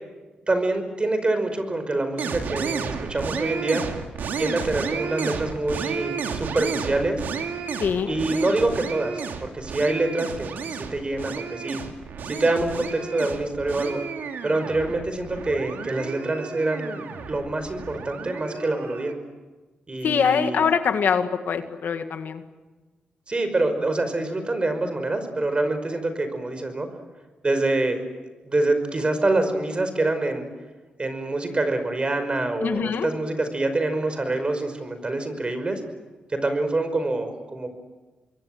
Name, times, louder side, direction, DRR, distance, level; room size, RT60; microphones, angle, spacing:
voice 1, 0.5-3.8 4.4-7.2 8.0-11.8 12.2-14.0 14.4-19.1 19.9-20.7 23.3-26.9 27.4-28.0 28.4-30.4 31.0-35.8 36.3-37.7, right 2 dB, 30° right, 8 dB, 5.5 m, -26 dB
sound 1, 2.2-19.1, right 6 dB, 80° right, 2.6 m, -32 dB
voice 2, 7.8-8.1 20.0-22.4 32.6-33.1, left 6 dB, 75° left, 8 dB, 1.9 m, -23 dB
27.0 x 22.0 x 7.9 m, 1.2 s
cardioid pair, 65°, 3 cm